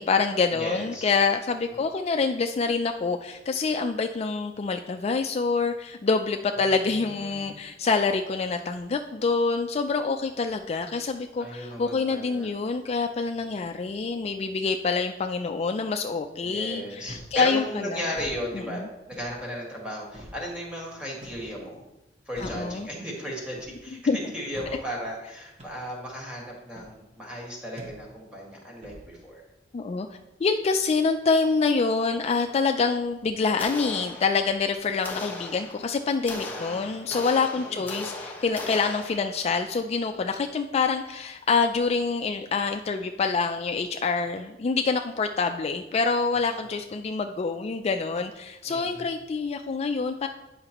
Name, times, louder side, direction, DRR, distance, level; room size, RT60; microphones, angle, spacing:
voice 1, 0.0-18.0 18.7-18.9 22.4-22.9 24.1-24.2 29.7-30.1 30.4-50.3, left 4 dB, 35° left, 6 dB, 0.3 m, -26 dB
voice 2, 0.5-1.1 1.7-1.8 6.6-7.6 11.4-12.5 13.3-13.6 16.4-21.8 22.2-29.4 36.4-37.0 37.5-37.8 46.5-46.6 48.6-49.1, equal, 5° right, -3 dB, 1.7 m, -36 dB
sound 1, 17.1-17.4 18.1-18.4 19.1-19.3 20.1-20.4 21.2-21.5 22.4-22.7 23.5-23.8 24.5-24.8 25.6-25.8 26.8-26.9 27.8-28.0 28.8-29.1, equal, 35° right, 1.2 m, -43 dB
sound 2, 33.6-34.6 35.0-39.5, left 2 dB, 10° left, 0.9 m, -38 dB
9.4 x 5.7 x 3.0 m, 0.98 s
head